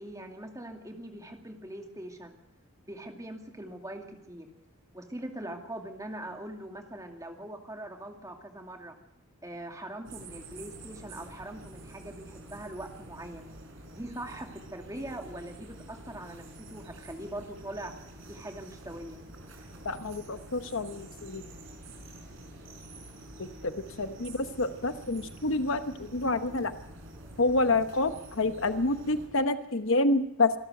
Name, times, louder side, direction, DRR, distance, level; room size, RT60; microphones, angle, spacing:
voice 1, 0.0-2.4 2.9-4.5 4.9-9.0 9.4-13.5 13.9-17.9 18.3-19.2, right 1 dB, 15° right, 4 dB, 2.3 m, -42 dB
sound 1, 10.1-29.3, right 1 dB, 60° right, 5.2 m, -48 dB
voice 2, 19.8-21.5 23.4-26.7 27.4-30.5, left 2 dB, 60° left, 10 dB, 1.0 m, -28 dB
26.0 x 12.5 x 7.9 m, 0.86 s
head